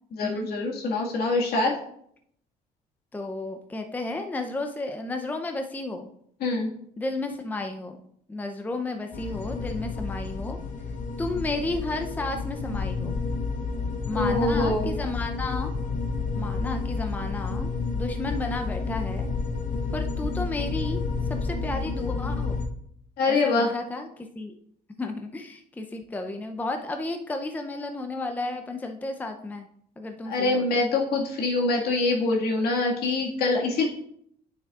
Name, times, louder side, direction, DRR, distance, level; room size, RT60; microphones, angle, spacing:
voice 1, 0.1-1.7 6.4-6.7 14.1-14.9 23.2-23.7 30.3-33.8, left 3 dB, 70° left, -1 dB, 1.8 m, -24 dB
voice 2, 3.1-6.1 7.0-8.0 8.3-10.6 11.2-13.1 14.1-15.7 16.3-19.3 19.9-21.0 21.3-22.6 23.3-24.5 25.0-29.7 30.0-30.7, left 2 dB, 10° left, 5 dB, 0.5 m, -32 dB
sound 1, 9.1-22.7, left 4 dB, 50° left, 0.9 m, -30 dB
9.2 x 6.8 x 2.4 m, 0.68 s
cardioid pair, 110°, 17 cm